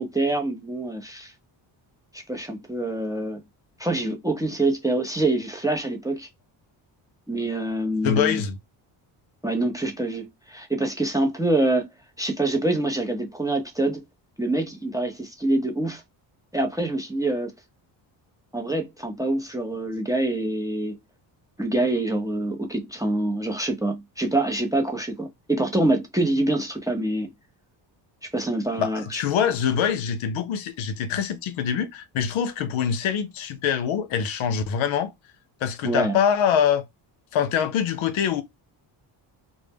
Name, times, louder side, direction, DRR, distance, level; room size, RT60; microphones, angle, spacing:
voice 1, 0.0-1.3 2.1-3.4 3.8-6.3 7.3-8.4 9.4-11.9 12.2-14.0 14.4-16.0 16.5-17.5 18.5-21.0 21.6-27.3 28.2-29.2 35.8-36.2, right 2 dB, 10° right, 0.4 m, -25 dB
voice 2, 8.0-8.6 28.8-35.1 35.6-36.8 37.3-38.4, left 8 dB, 75° left, 0.6 m, -24 dB
2.0 x 2.0 x 3.3 m
cardioid pair, 80°, 48 cm